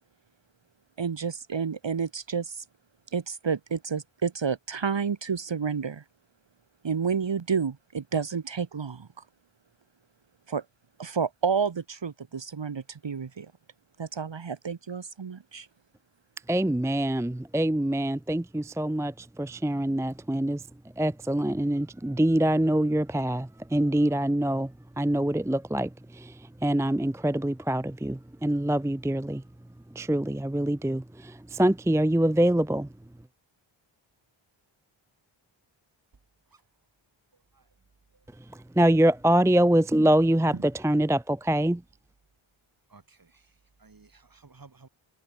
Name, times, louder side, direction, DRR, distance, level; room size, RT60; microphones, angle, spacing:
voice 1, 1.0-2.6 3.1-6.0 6.8-9.1 10.5-10.6 11.0-13.5 14.0-15.7, right 6 dB, 60° right, 2.9 m, -30 dB
voice 2, 16.5-20.6 21.0-29.4 29.9-32.9 38.8-40.5 40.8-41.8, right 1 dB, 5° right, 0.6 m, -25 dB
voice 3, 42.9-43.4 43.8-44.9, right 4 dB, 45° right, 6.4 m, -46 dB
wide cardioid pair, 90°, 49 cm